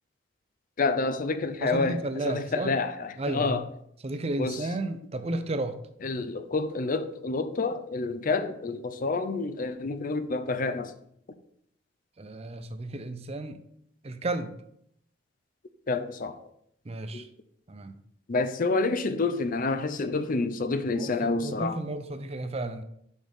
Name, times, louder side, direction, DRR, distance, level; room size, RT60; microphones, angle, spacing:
voice 1, 0.8-3.6 4.4-4.6 6.0-10.9 15.9-16.4 17.1-17.2 18.3-21.8, left 3 dB, 50° left, 0.6 m, -28 dB
voice 2, 1.6-2.8 3.2-3.6 4.0-5.8 12.2-13.6 14.0-14.5 16.9-17.3 17.7-17.9 20.9-22.8, right 2 dB, 35° right, 0.6 m, -33 dB
6.6 x 6.3 x 3.6 m
head